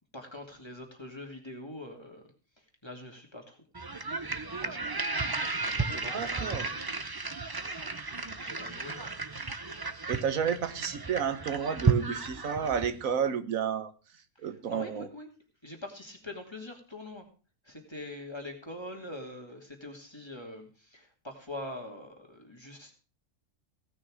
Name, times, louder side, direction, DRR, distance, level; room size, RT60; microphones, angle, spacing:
voice 1, 0.1-2.2 2.6-3.6 4.5-4.9 5.6-7.0 8.3-9.1 14.3-15.3 15.6-17.3 17.6-23.0, left 1 dB, 20° left, 2 dB, 2.5 m, -44 dB
sound 1, 3.7-13.1, right 4 dB, 20° right, 0.7 m, -33 dB
voice 2, 6.1-6.7 10.1-13.9 14.4-15.1, right 7 dB, 85° right, 10 dB, 1.5 m, -31 dB
17.0 x 6.3 x 6.2 m, 0.36 s
omnidirectional pair, 1.4 m